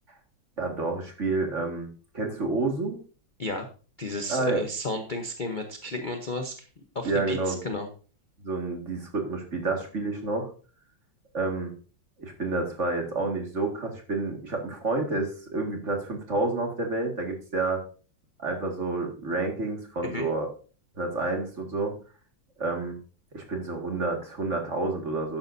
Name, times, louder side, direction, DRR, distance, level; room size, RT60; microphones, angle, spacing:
voice 1, 0.6-1.9 2.1-3.0 4.3-4.6 7.0-7.6 8.4-10.5 11.3-11.7 12.2-17.8 18.4-20.5 21.0-21.9 22.6-23.0 23.3-25.4, right 3 dB, 40° right, 2 dB, 2.2 m, -29 dB
voice 2, 4.0-6.6 6.9-7.9 20.0-20.3, left 2 dB, 35° left, 5 dB, 0.8 m, -33 dB
12.0 x 9.5 x 2.7 m, 0.37 s
omnidirectional pair, 2.0 m